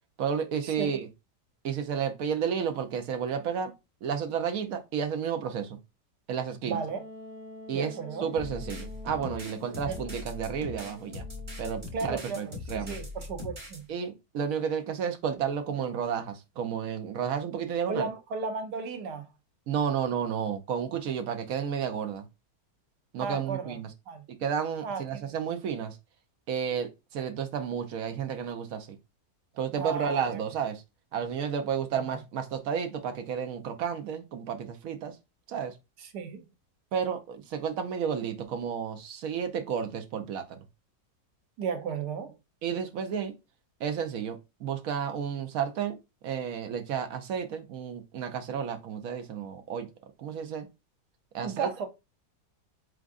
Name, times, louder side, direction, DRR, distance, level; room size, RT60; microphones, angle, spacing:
voice 1, 0.2-1.1 1.6-3.7 4.0-5.8 6.3-6.8 7.7-7.9 8.2-11.2 11.6-13.0 13.9-18.1 19.7-22.2 23.1-23.9 24.4-26.0 26.5-29.0 29.6-30.8 31.1-35.1 35.5-35.7 36.9-40.6 42.6-43.3 43.8-46.0 46.2-49.9 50.2-50.7 51.3-51.7, right 7 dB, 65° right, 1.1 m, -32 dB
voice 2, 6.6-7.0 7.7-8.3 9.9-10.0 11.9-13.9 17.9-19.3 23.2-23.8 24.1-24.2 24.8-25.3 29.7-30.4 31.9-32.1 36.0-36.4 41.6-42.3 51.4-51.9, right 5 dB, 85° right, 1.4 m, -34 dB
Wind instrument woodwind instrument, 6.9-12.4, left 2 dB, 40° left, 2.2 m, -47 dB
sound 1, 8.4-13.8, left 2 dB, 20° right, 1.0 m, -40 dB
4.6 x 3.8 x 2.4 m
omnidirectional pair, 1.7 m